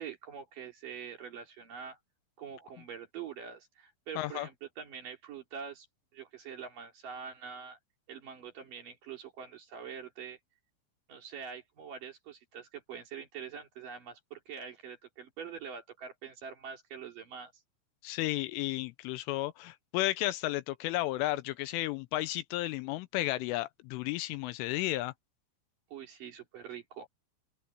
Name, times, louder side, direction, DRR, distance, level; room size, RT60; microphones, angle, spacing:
voice 1, 0.0-2.0 2.4-5.9 6.1-7.8 8.1-10.4 11.1-17.5 25.9-27.1, right 7 dB, 45° right, 4.0 m, -44 dB
voice 2, 4.2-4.5 18.0-25.1, left 17 dB, 85° left, 3.0 m, -33 dB
open air
omnidirectional pair, 5.9 m